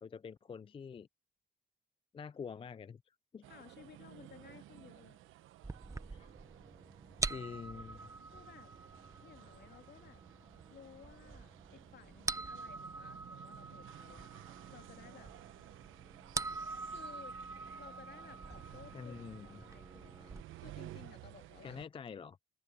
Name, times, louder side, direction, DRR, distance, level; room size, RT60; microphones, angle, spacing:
voice 1, 0.0-1.1 2.1-3.0 3.3-3.5 6.1-6.3 7.2-8.1 18.9-19.6 21.6-22.4, left 6 dB, 25° left, 0.4 m, -46 dB
sound 1, 3.4-21.9, right 15 dB, 85° right, 1.1 m, -55 dB
voice 2, 3.5-5.2 8.3-8.7 9.2-10.2 10.7-14.3 14.7-15.3 16.9-17.4 17.8-19.2 19.4-21.8, left 8 dB, 60° left, 2.0 m, -57 dB
sound 2, 5.6-20.4, right 3 dB, 15° right, 0.7 m, -45 dB
open air
cardioid pair, 90°, 20 cm